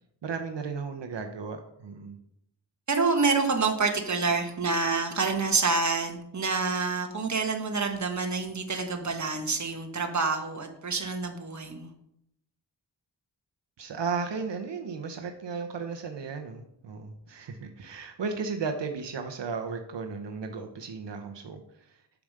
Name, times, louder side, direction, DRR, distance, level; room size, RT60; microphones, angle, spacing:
voice 1, 0.2-2.2 13.8-21.9, right 5 dB, 75° right, 5 dB, 0.8 m, -35 dB
voice 2, 2.9-11.9, right 4 dB, 40° right, 4 dB, 1.2 m, -27 dB
7.0 x 4.9 x 6.5 m, 0.76 s
wide cardioid pair, 105°, 42 cm